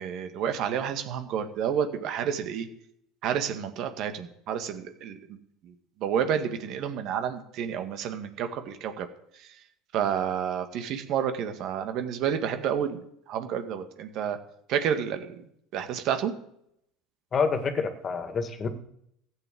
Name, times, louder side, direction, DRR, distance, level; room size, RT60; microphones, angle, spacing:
voice 1, 0.0-2.7 3.2-5.4 5.6-5.7 6.0-9.1 9.3-9.5 9.9-14.4 14.7-15.4 15.7-16.3, right 8 dB, 60° right, 7 dB, 1.9 m, -30 dB
voice 2, 17.3-18.7, left 5 dB, 35° left, 8 dB, 2.1 m, -27 dB
14.5 x 8.1 x 7.8 m, 0.74 s
hypercardioid pair, 85°, 0 cm